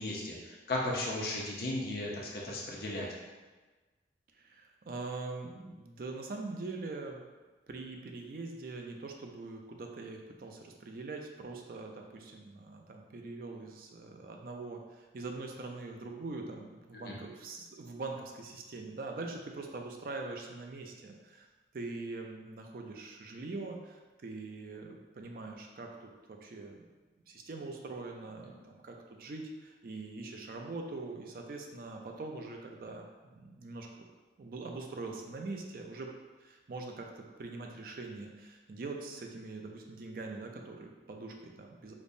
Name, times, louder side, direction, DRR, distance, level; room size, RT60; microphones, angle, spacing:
voice 1, 0.0-3.1 16.9-17.2, left 1 dB, 55° left, -3 dB, 0.5 m, -35 dB
voice 2, 4.4-7.2 7.7-21.5 21.7-26.9 27.3-33.9 34.4-36.1 36.4-41.9, right 3 dB, 50° right, 2 dB, 0.4 m, -43 dB
5.1 x 2.0 x 2.6 m, 1.3 s
head